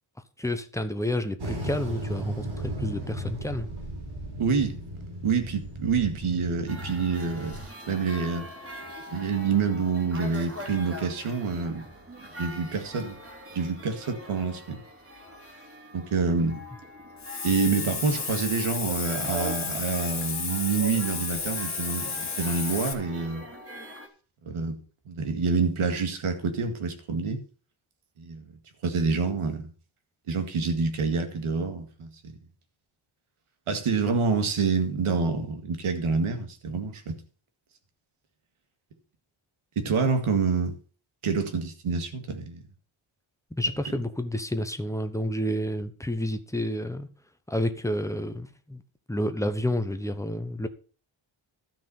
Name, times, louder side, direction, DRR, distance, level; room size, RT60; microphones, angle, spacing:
voice 1, 0.4-3.7 43.5-47.1 47.5-48.8 49.1-50.7, left 1 dB, 5° left, 1.0 m, -30 dB
sound 1, 1.4-7.7, right 1 dB, 50° right, 5.1 m, -36 dB
voice 2, 4.4-4.8 5.2-7.6 7.9-8.5 9.1-11.9 12.4-13.2 13.5-14.8 15.9-16.6 17.4-23.5 24.4-24.8 25.1-27.4 28.2-28.4 28.8-29.7 30.3-32.3 33.7-37.2 39.8-40.8 41.2-42.6, right 4 dB, 85° right, 2.1 m, -27 dB
sound 2, 6.7-24.1, equal, 30° right, 3.1 m, -42 dB
Hiss, 17.2-22.9, left 5 dB, 35° left, 1.9 m, -32 dB
13.0 x 5.8 x 7.1 m
wide cardioid pair, 155°, 49 cm